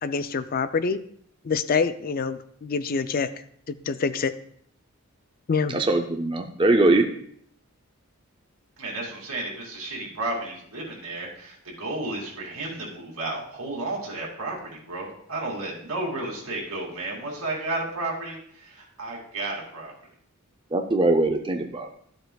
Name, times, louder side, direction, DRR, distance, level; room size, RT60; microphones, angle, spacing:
voice 1, 0.0-1.0 1.4-3.3 3.7-4.3 5.5-5.8, left 5 dB, 40° left, 12 dB, 0.4 m, -26 dB
voice 2, 5.7-7.1 20.7-21.9, right 2 dB, 20° right, 5 dB, 0.5 m, -21 dB
voice 3, 8.8-19.9, right 2 dB, 90° right, -2 dB, 2.6 m, -32 dB
12.5 x 7.9 x 2.3 m, 0.65 s
head